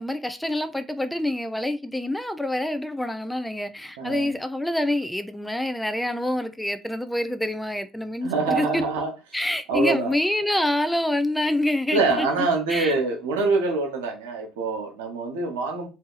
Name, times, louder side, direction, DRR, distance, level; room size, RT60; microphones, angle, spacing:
voice 1, 0.0-8.8 9.3-12.3 12.7-12.9, left 1 dB, 5° left, 0.5 m, -26 dB
voice 2, 4.0-4.3 8.2-9.1 9.7-10.2 11.9-15.9, right 3 dB, 90° right, 0.9 m, -25 dB
2.8 x 2.6 x 3.8 m
hypercardioid pair, 65°, 0 cm